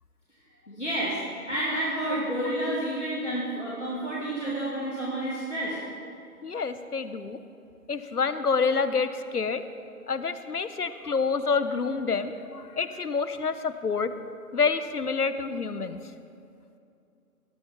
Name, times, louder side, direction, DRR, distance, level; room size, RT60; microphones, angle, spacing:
voice 1, 0.7-1.2 1.5-5.8, right 1 dB, 50° left, -7 dB, 2.2 m, -30 dB
voice 2, 6.4-7.4 7.9-9.6 10.1-14.1 14.5-16.0, left 5 dB, 75° left, 12 dB, 0.8 m, -28 dB
18.0 x 6.7 x 3.6 m, 2.5 s
figure-of-eight pair, 170°, 46 cm